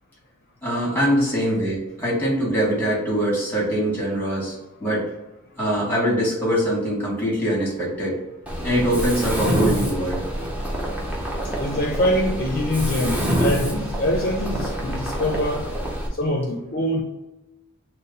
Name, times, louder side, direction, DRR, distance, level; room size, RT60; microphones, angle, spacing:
voice 1, 0.6-5.1 5.6-8.2 8.6-10.2, equal, 10° left, -3 dB, 1.2 m, -23 dB
Mechanisms, 8.5-16.1, equal, 5° right, 0.6 m, -26 dB
voice 2, 11.6-15.7 16.2-17.0, left 1 dB, 45° left, 0 dB, 0.5 m, -24 dB
4.0 x 2.0 x 3.8 m, 0.99 s
head